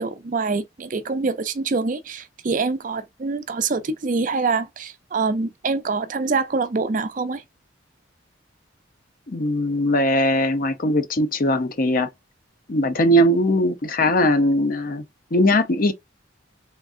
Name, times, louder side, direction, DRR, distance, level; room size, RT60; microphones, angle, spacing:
voice 1, 0.0-7.4, right 4 dB, 40° right, 0.5 m, -25 dB
voice 2, 9.3-12.1 12.7-15.0 15.3-15.9, left 1 dB, 45° left, 0.6 m, -20 dB
3.6 x 3.2 x 2.5 m
head